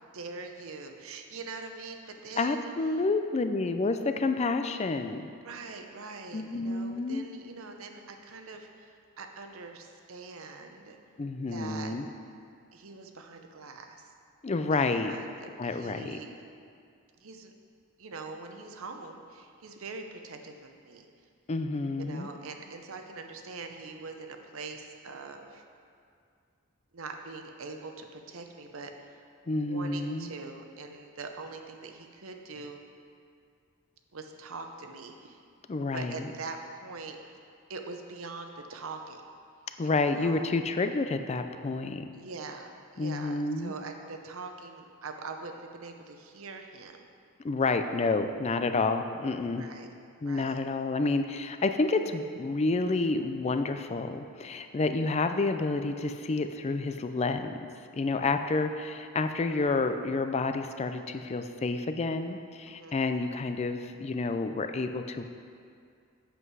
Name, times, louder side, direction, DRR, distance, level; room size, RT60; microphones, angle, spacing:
voice 1, 0.1-2.7 5.4-11.0 11.5-11.9 12.7-14.1 14.7-16.3 17.2-17.5 18.0-21.1 22.0-25.6 26.9-29.1 29.6-32.8 34.1-35.4 35.9-37.2 37.7-39.2 39.8-40.5 42.1-47.1 49.5-49.9 50.2-50.6 62.7-63.0, right 3 dB, 65° right, 5 dB, 0.7 m, -43 dB
voice 2, 2.4-5.3 6.3-7.3 11.2-12.1 14.4-15.2 15.6-16.2 21.5-22.3 29.5-30.3 35.7-36.2 39.8-42.1 43.0-43.7 47.4-49.6 50.2-57.7 57.9-65.2, left 3 dB, 30° left, 8 dB, 0.4 m, -29 dB
8.1 x 7.8 x 4.7 m, 2.3 s
head